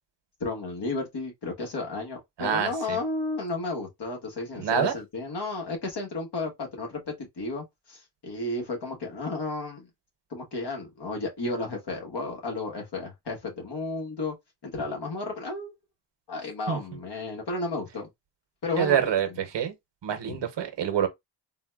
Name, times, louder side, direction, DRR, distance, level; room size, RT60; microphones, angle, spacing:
voice 1, 0.4-9.9 10.3-14.3 14.6-15.7 16.3-18.1 18.6-19.1 20.3-20.4, left 2 dB, 70° left, 1.4 m, -33 dB
voice 2, 2.4-3.0 4.6-4.9 16.7-16.8 18.8-19.7 20.0-21.1, right 8 dB, 75° right, 0.8 m, -26 dB
3.9 x 2.2 x 2.2 m
wide cardioid pair, 100°, 42 cm